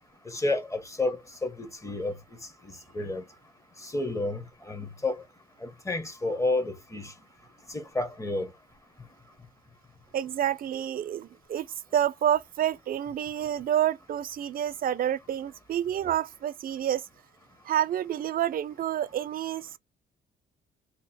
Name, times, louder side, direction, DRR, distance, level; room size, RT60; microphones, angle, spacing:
voice 1, 0.3-2.1 2.9-3.2 3.8-5.2 5.6-7.1 7.7-8.5, left 2 dB, 15° left, 0.8 m, -30 dB
voice 2, 10.1-11.7 11.9-17.1 17.6-19.8, right 10 dB, 45° right, 0.4 m, -28 dB
2.9 x 2.0 x 4.0 m
cardioid pair, 90°, 20 cm